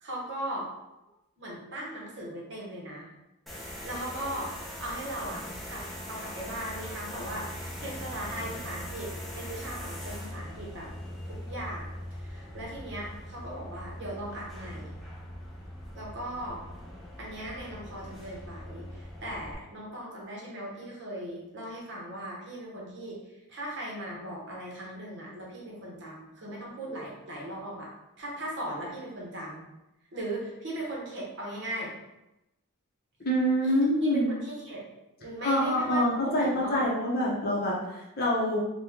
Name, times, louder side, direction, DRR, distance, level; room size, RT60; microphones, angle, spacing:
voice 1, 0.0-0.7 1.4-3.1 3.8-4.5 4.8-10.9 11.3-15.0 15.9-16.6 17.2-23.2 23.5-27.9 28.2-29.7 30.1-31.9 33.6-33.7 34.0-34.8 35.2-36.8, right 1 dB, 50° right, -4 dB, 0.9 m, -38 dB
sound 1, 3.5-19.5, equal, ahead, 0.5 m, -41 dB
voice 2, 33.2-34.3 35.4-38.6, equal, 45° left, -3 dB, 0.7 m, -26 dB
2.9 x 2.2 x 3.5 m, 0.92 s
head